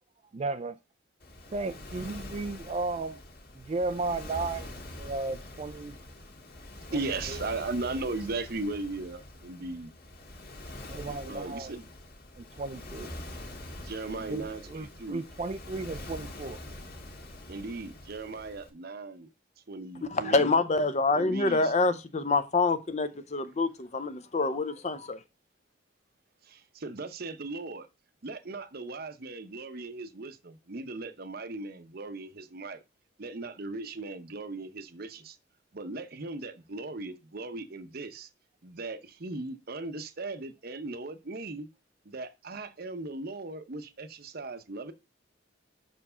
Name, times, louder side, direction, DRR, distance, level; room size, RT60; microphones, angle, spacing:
voice 1, 0.3-0.8 1.5-3.2 3.6-4.7 5.0-6.0 6.9-7.4 10.9-11.8 12.4-13.1 14.3-16.6, right 3 dB, 35° right, 0.4 m, -34 dB
Waves surf, 1.2-18.7, left 1 dB, 55° left, 1.8 m, -44 dB
voice 2, 6.9-9.9 11.1-11.8 13.8-15.3 17.5-19.3 19.7-20.5 21.1-21.7 26.4-27.9 28.2-32.8 33.2-35.4 35.7-38.3 38.6-41.7 42.0-44.9, right 3 dB, 50° right, 0.8 m, -37 dB
voice 3, 20.1-25.2, left 3 dB, 35° left, 0.7 m, -26 dB
6.0 x 4.5 x 5.5 m
head